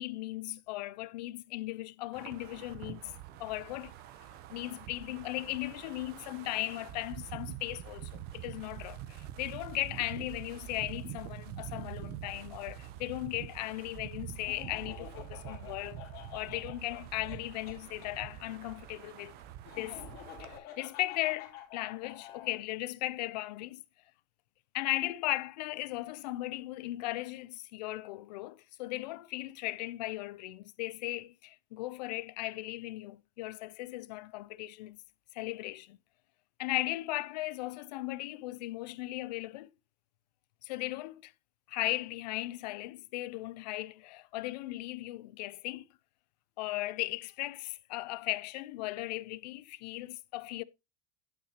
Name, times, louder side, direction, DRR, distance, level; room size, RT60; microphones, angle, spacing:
voice 1, 0.0-3.1 3.4-3.9 4.5-16.0 16.3-19.3 19.8-20.0 20.4-23.8 24.7-35.0 35.3-36.0 36.6-39.7 40.6-41.3 41.7-45.9 46.6-50.6, left 18 dB, 80° left, 0.6 m, -37 dB
Wind, 2.1-20.6, right 11 dB, 50° right, 0.9 m, -46 dB
Laughter, 14.4-18.1 19.6-22.6, left 10 dB, 50° left, 2.8 m, -49 dB
10.0 x 5.8 x 3.0 m
supercardioid pair, 135°, 21 cm